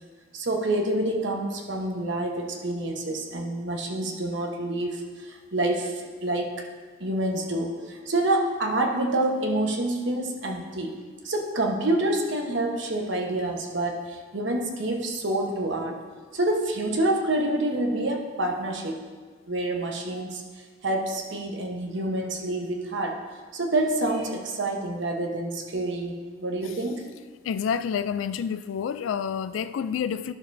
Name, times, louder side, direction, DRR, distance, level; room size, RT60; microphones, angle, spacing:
voice 1, 0.3-6.5 7.0-11.0 11.2-16.0 16.3-19.0 19.5-20.4 20.8-23.2 23.5-26.1 26.4-27.0, right 1 dB, 70° right, 1.0 m, -27 dB
voice 2, 27.4-30.3, left 7 dB, 85° left, 0.3 m, -29 dB
12.0 x 6.6 x 2.6 m
head